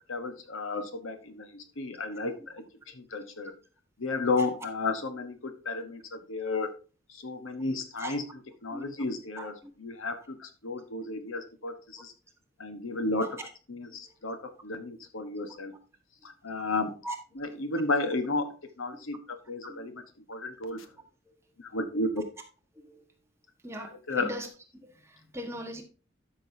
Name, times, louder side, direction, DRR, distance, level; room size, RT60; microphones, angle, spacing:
voice 1, 0.1-3.5 4.0-6.7 7.1-8.2 8.6-12.1 12.6-13.4 13.7-15.7 16.2-16.9 17.3-18.5 18.8-20.0 20.3-20.9 21.6-22.2 23.9-24.3, left 3 dB, 85° left, 1.3 m, -33 dB
voice 2, 8.7-9.0 9.4-9.7 13.2-13.3 13.8-14.1 17.0-17.1 19.7-19.9 22.8-23.0 23.6-24.5 24.8-25.8, right 1 dB, 15° right, 1.4 m, -40 dB
12.5 x 6.3 x 2.8 m
head